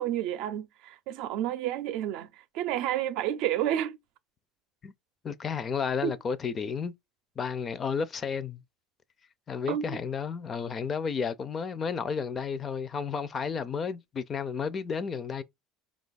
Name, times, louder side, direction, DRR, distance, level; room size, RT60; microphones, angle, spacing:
voice 1, 0.0-2.3 2.5-4.0 6.0-6.1 9.7-10.0, right 12 dB, 70° right, 0.5 m, -30 dB
voice 2, 5.2-6.9 7.4-8.6 9.5-15.4, left 6 dB, 30° left, 0.4 m, -32 dB
4.6 x 2.4 x 4.0 m
supercardioid pair, 115°, 0 cm